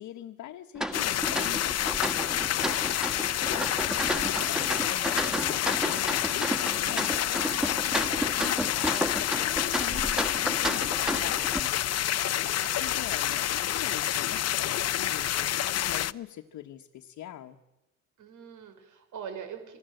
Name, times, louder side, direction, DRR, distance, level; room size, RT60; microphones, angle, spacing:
voice 1, 0.0-1.8 3.5-11.8 12.8-17.6, left 12 dB, 80° left, 4 dB, 1.3 m, -44 dB
sound 1, 0.8-11.6, equal, ahead, 1.9 m, -32 dB
sound 2, 0.9-16.1, left 12 dB, 55° left, 0.7 m, -28 dB
voice 2, 2.3-2.9 11.6-12.8 18.2-19.8, right 7 dB, 80° right, 7 dB, 5.3 m, -45 dB
27.0 x 19.0 x 7.9 m, 1.0 s
cardioid pair, 90°, 30 cm